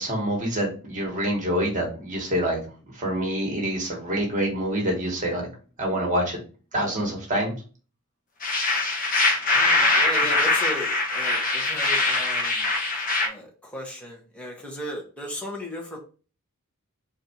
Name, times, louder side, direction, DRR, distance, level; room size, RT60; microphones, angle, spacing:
voice 1, 0.0-2.6 2.9-5.5 5.8-6.4 6.7-7.5, right 1 dB, 35° right, 0 dB, 1.3 m, -26 dB
sound 1, 8.4-13.3, left 2 dB, 40° left, 0.9 m, -22 dB
voice 2, 9.5-12.7 13.2-16.0, equal, 5° left, -2 dB, 1.1 m, -36 dB
4.1 x 2.7 x 4.4 m, 0.37 s
head